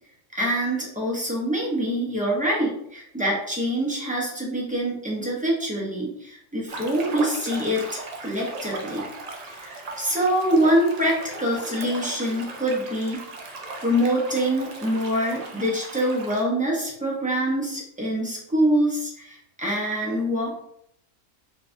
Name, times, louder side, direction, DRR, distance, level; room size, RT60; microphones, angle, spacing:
voice 1, 0.3-9.1 9.6-13.2 13.8-20.6, right 1 dB, 10° right, -4 dB, 0.5 m, -25 dB
sound 1, 6.7-16.4, right 2 dB, 85° right, 0.3 m, -37 dB
3.9 x 2.3 x 2.5 m, 0.73 s
omnidirectional pair, 1.4 m